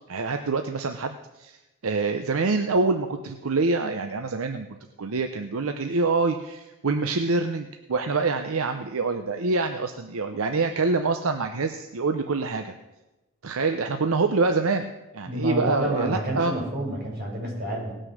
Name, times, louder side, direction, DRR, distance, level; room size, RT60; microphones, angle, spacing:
voice 1, 0.1-1.6 1.8-4.7 5.0-12.7 13.4-16.5, right 3 dB, 75° right, 6 dB, 0.7 m, -26 dB
voice 2, 15.3-17.9, right 1 dB, 50° right, -2 dB, 5.6 m, -29 dB
18.5 x 6.3 x 6.4 m, 1.0 s
head